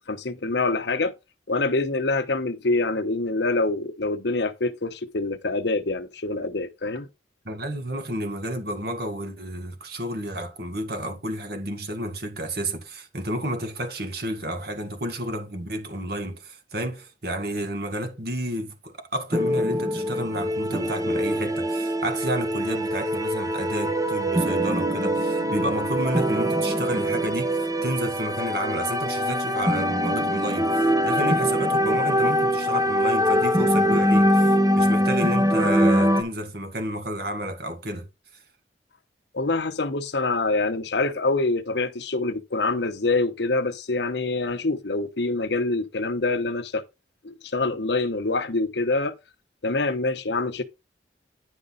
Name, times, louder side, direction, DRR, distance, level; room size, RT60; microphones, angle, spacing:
voice 1, 0.1-1.1 1.5-7.1 39.3-46.8 47.2-49.1 49.6-50.6, left 3 dB, 70° left, 0.9 m, -25 dB
voice 2, 7.5-38.1, right 1 dB, 60° right, 1.9 m, -31 dB
sound 1, 19.3-36.2, equal, 20° right, 0.8 m, -23 dB
9.9 x 5.2 x 3.9 m
head